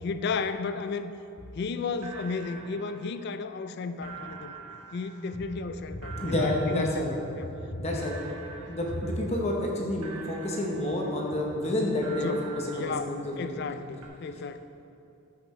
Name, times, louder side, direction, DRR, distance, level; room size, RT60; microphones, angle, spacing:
voice 1, 0.0-1.1 1.6-4.6 4.9-7.0 7.4-7.5 7.9-8.2 8.6-8.7 11.8-12.0 12.2-12.5 12.7-14.6, left 4 dB, 50° left, 10 dB, 0.3 m, -34 dB
sound 1, 1.6-1.7 2.0-3.6 4.0-7.7 8.0-9.6 10.0-11.6 12.0-13.7 14.0-14.1, right 5 dB, 85° right, 1.3 m, -46 dB
voice 2, 6.2-7.2 7.7-8.2 8.7-12.4 12.7-13.6, left 1 dB, 30° left, -1 dB, 1.0 m, -29 dB
14.0 x 5.9 x 3.2 m, 2.7 s
head